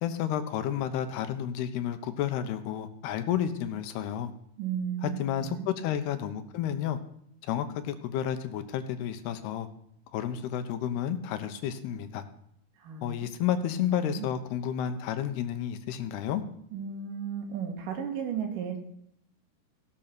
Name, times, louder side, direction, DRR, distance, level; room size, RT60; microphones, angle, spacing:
voice 1, 0.0-4.3 5.0-7.0 7.5-9.7 10.1-12.2 13.0-16.4, left 9 dB, 85° left, 9 dB, 3.1 m, -31 dB
voice 2, 4.6-5.7 12.8-13.1 13.7-14.3 16.7-18.8, right 8 dB, 60° right, 4 dB, 3.5 m, -35 dB
15.5 x 10.5 x 6.1 m, 0.72 s
omnidirectional pair, 4.6 m